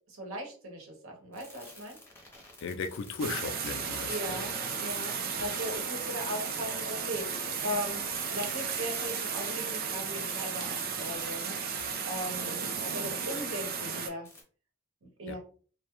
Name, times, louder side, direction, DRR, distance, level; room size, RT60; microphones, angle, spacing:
voice 1, 0.1-2.0 4.1-12.6 12.8-14.3 15.2-15.4, equal, 75° right, 2 dB, 0.9 m, -38 dB
sound 1, 1.3-14.0 14.2-14.4, left 2 dB, 10° left, 0.6 m, -53 dB
voice 2, 2.6-4.4 5.4-5.5 11.8-11.9 15.3-15.4, left 5 dB, 60° left, 9 dB, 0.3 m, -37 dB
sound 2, 3.2-14.1, right 6 dB, 45° right, 0.4 m, -34 dB
2.2 x 2.1 x 2.9 m, 0.41 s
head